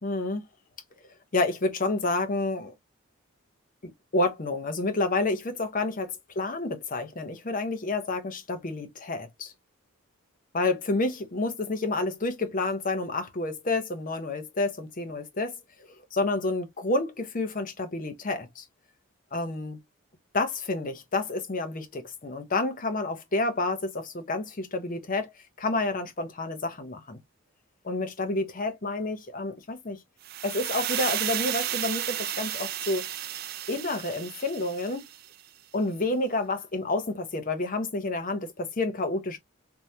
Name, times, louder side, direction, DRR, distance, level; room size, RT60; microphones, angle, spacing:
voice 1, 0.0-0.5 1.3-2.7 3.8-9.5 10.5-15.5 16.1-18.6 19.3-19.8 20.3-25.3 25.6-27.2 27.8-30.0 30.4-33.1 33.7-35.1 35.7-39.4, left 2 dB, 40° left, 0.7 m, -29 dB
sound 1, 30.2-35.3, right 12 dB, 45° right, 0.3 m, -33 dB
3.2 x 2.1 x 2.7 m
head